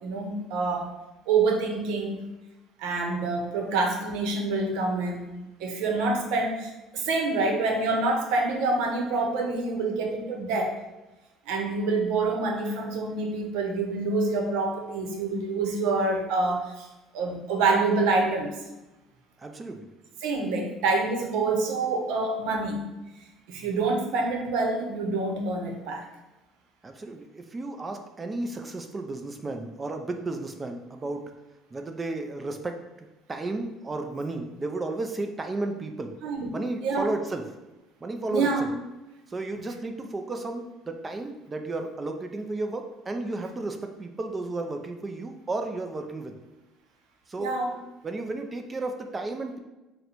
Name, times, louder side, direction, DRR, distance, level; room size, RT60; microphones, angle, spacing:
voice 1, 0.0-0.9 1.3-2.3 2.8-10.8 11.5-16.9 17.1-18.6 20.2-22.8 23.5-26.1 36.2-36.5 36.8-37.1 38.3-38.7 47.4-47.8, right 3 dB, 85° right, 2 dB, 0.8 m, -27 dB
voice 2, 19.4-19.9 26.8-31.2 31.7-36.1 36.5-37.4 38.0-38.7 39.3-46.3 47.3-47.5 48.0-49.6, right 2 dB, 20° right, 5 dB, 0.4 m, -33 dB
4.0 x 2.1 x 4.3 m, 1.0 s
cardioid pair, 155°, 0 cm